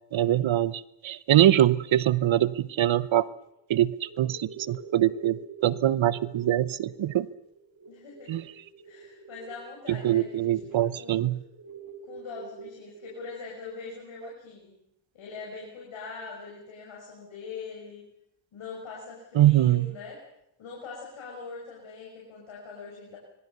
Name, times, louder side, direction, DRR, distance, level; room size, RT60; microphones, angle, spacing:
voice 1, 0.1-3.3 3.7-7.3 8.3-8.4 9.9-11.4 19.4-19.9, right 12 dB, 75° right, 17 dB, 1.0 m, -23 dB
sound 1, 3.4-3.6 4.0-13.3, right 4 dB, 45° right, 4.9 m, -47 dB
voice 2, 7.9-8.3 8.8-11.2 12.0-14.7 15.1-18.0 18.5-20.2 20.6-23.2, left 4 dB, 90° left, -3 dB, 6.0 m, -42 dB
24.5 x 23.0 x 6.9 m, 0.80 s
cardioid pair, 55°, 47 cm